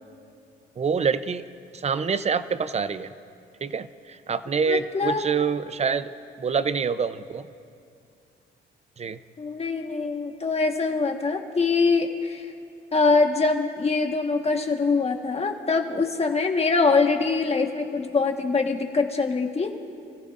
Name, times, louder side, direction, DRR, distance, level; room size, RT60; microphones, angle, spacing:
voice 1, 0.8-1.4 1.7-3.1 3.6-6.1 6.4-7.5 9.0-9.2, right 5 dB, 35° right, 13 dB, 0.6 m, -26 dB
voice 2, 4.7-5.3 9.4-12.5 12.9-19.7, left 4 dB, 30° left, 4 dB, 1.5 m, -23 dB
27.0 x 15.0 x 2.6 m, 2.6 s
cardioid pair, 90°, 20 cm